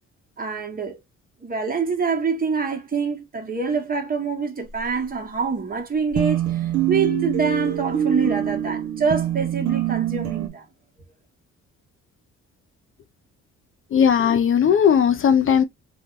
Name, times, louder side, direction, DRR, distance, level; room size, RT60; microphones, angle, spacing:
voice 1, 0.4-1.0 1.4-10.6, right 5 dB, 30° right, 0.9 m, -25 dB
sound 1, 6.2-10.5, right 10 dB, 70° right, 0.9 m, -24 dB
voice 2, 13.9-15.6, left 8 dB, 45° left, 0.4 m, -17 dB
2.6 x 2.1 x 3.7 m
cardioid pair, 90°, 30 cm